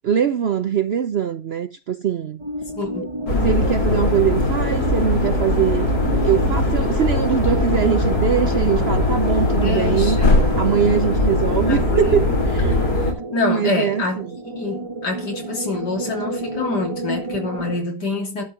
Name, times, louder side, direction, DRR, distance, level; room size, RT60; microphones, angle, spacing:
voice 1, 0.0-2.4 3.4-5.9 6.2-10.2 10.6-13.0 13.3-14.0, right 8 dB, 60° right, 0.6 m, -22 dB
sound 1, 2.4-17.8, right 2 dB, 20° right, 1.2 m, -30 dB
voice 2, 2.8-3.1 9.6-10.4 11.5-12.2 13.3-18.4, left 3 dB, 90° left, 3.6 m, -26 dB
sound 2, 3.3-13.1, left 2 dB, 70° left, 3.5 m, -20 dB
11.5 x 4.8 x 6.9 m
omnidirectional pair, 1.7 m